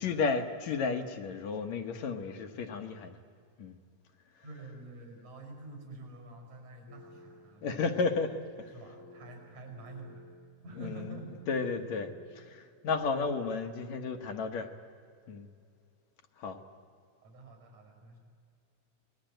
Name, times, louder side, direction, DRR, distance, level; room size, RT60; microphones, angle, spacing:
voice 1, 0.0-3.1 3.6-3.8 7.6-8.7 10.8-11.1 11.5-12.1 12.4-14.7 15.3-15.5 16.4-16.6, left 4 dB, 65° left, 5 dB, 2.3 m, -33 dB
voice 2, 4.4-8.0 8.7-10.2 10.6-11.9 17.2-18.2, right 2 dB, 70° right, 3 dB, 7.3 m, -48 dB
sound 1, 6.9-12.5, left 2 dB, 35° left, 1.4 m, -55 dB
28.0 x 20.5 x 9.0 m, 2.3 s
omnidirectional pair, 3.6 m